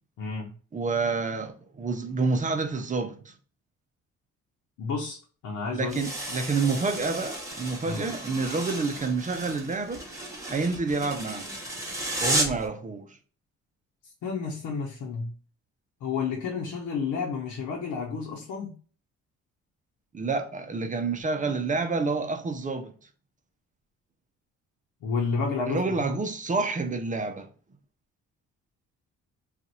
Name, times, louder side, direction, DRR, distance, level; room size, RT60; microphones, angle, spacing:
voice 1, 0.2-0.5 4.8-5.2 5.4-6.0 7.9-8.0 14.2-15.3 16.0-18.8 25.0-26.1, left 5 dB, 80° left, 0.9 m, -31 dB
voice 2, 0.7-3.3 5.7-10.0 10.5-11.4 12.2-13.2 20.1-22.9 25.7-27.5, right 4 dB, 25° right, 0.6 m, -28 dB
sound 1, 5.9-12.7, right 1 dB, 10° right, 1.1 m, -33 dB
2.6 x 2.5 x 4.1 m
cardioid pair, 90°, 30 cm